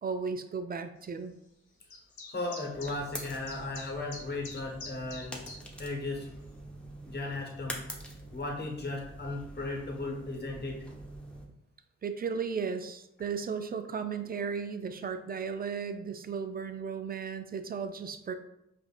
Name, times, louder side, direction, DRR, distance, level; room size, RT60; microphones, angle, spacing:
voice 1, 0.0-1.3 12.0-18.3, right 6 dB, 30° right, 9 dB, 0.4 m, -35 dB
sound 1, 1.9-5.6, left 3 dB, 85° left, 0.8 m, -45 dB
voice 2, 2.3-5.4 5.8-6.3 7.1-7.8 8.3-10.8, left 2 dB, 35° left, 0 dB, 1.1 m, -36 dB
sound 2, 2.7-11.5, right 1 dB, 5° left, 0.8 m, -45 dB
5.0 x 2.4 x 2.4 m, 0.83 s
cardioid pair, 60°, 29 cm